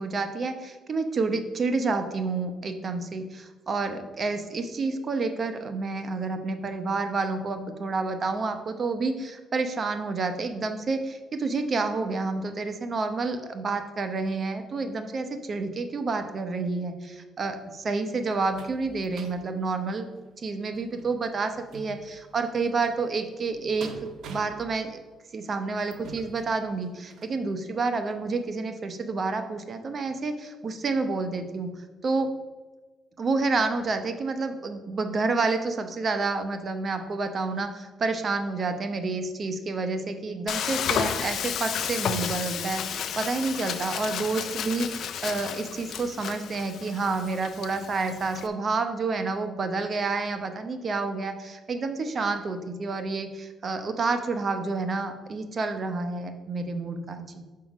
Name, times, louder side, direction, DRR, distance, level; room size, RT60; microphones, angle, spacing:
voice 1, 0.0-20.1 20.4-25.0 25.3-31.7 32.0-32.3 33.2-57.5, right 3 dB, 45° right, 7 dB, 0.8 m, -29 dB
sound 1, 17.6-27.4 28.0-28.1 28.4-28.5, right 4 dB, 70° right, 0.8 m, -48 dB
Frying (food), 40.5-48.5, left 8 dB, 70° left, 0.5 m, -32 dB
5.7 x 5.2 x 6.0 m, 1.2 s
cardioid pair, 90°, 0 cm